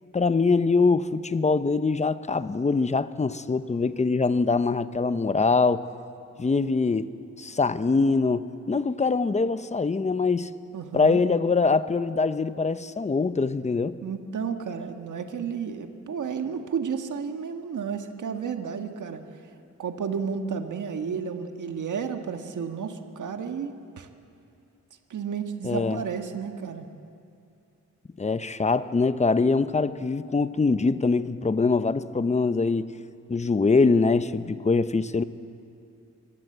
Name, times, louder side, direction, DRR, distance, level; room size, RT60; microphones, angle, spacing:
voice 1, 0.1-5.8 6.4-7.1 7.4-10.5 10.9-14.0 25.6-26.0 28.2-32.9 33.3-35.2, left 4 dB, 25° left, 13 dB, 0.7 m, -23 dB
voice 2, 10.7-11.2 14.0-19.2 19.8-24.1 25.1-26.9, right 6 dB, 80° right, 6 dB, 1.7 m, -32 dB
26.0 x 23.5 x 8.0 m, 2.6 s
wide cardioid pair, 140°, 30 cm